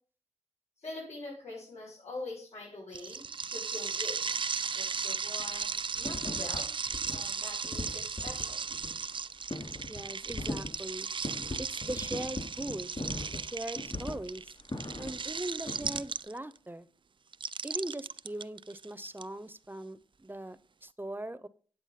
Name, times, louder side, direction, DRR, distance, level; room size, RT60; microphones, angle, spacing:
voice 1, 0.8-3.2 3.5-4.4 4.7-6.8 7.1-8.6, left 2 dB, 80° left, -9 dB, 7.0 m, -44 dB
sound 1, 2.9-16.6 17.3-19.2, right 5 dB, 45° right, 0.4 m, -36 dB
sound 2, 5.4-5.6 5.9-6.6 6.8-7.2 7.4-15.3 15.6-16.0, left 2 dB, 45° left, 4.1 m, -39 dB
voice 2, 9.9-11.1 11.6-13.0 13.3-14.5 15.0-16.9 17.6-21.5, right 1 dB, 20° right, 15 dB, 0.8 m, -40 dB
9.2 x 7.9 x 5.8 m, 0.43 s
cardioid pair, 40°, 11 cm